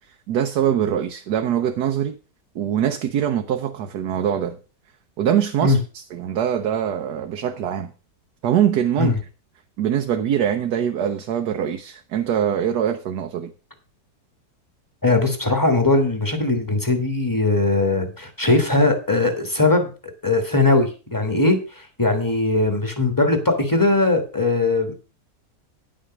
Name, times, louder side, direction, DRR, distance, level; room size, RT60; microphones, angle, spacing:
voice 1, 0.3-2.2 2.5-4.6 5.2-7.9 8.4-9.1 9.8-13.5, right 9 dB, 75° right, 1.4 m, -23 dB
voice 2, 15.0-19.9 20.2-21.6 22.0-24.9, left 2 dB, 10° left, 1.7 m, -19 dB
10.0 x 6.3 x 6.0 m
omnidirectional pair, 1.8 m